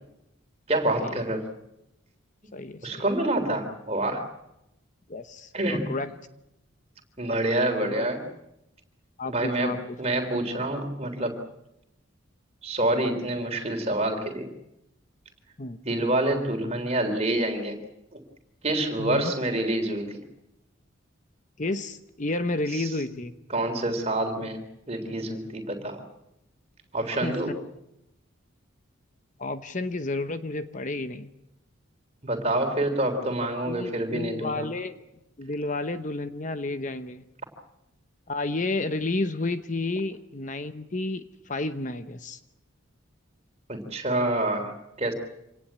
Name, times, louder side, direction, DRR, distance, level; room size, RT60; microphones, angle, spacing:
voice 1, 0.7-1.5 2.8-4.2 5.5-6.0 7.2-8.2 9.3-11.4 12.6-14.5 15.8-17.8 18.1-18.2 18.6-20.2 22.7-22.9 23.5-26.0 26.9-27.5 32.2-34.7 43.7-44.7 45.0-45.1, right 1 dB, 30° right, 5 dB, 3.5 m, -27 dB
voice 2, 2.5-3.0 5.1-6.1 7.8-8.1 9.2-10.0 15.6-15.8 19.0-19.3 21.6-23.3 27.2-27.4 29.4-31.3 33.6-35.0 35.4-37.2 38.3-42.4, left 2 dB, 40° left, 10 dB, 0.9 m, -31 dB
26.0 x 18.5 x 8.6 m, 0.89 s
head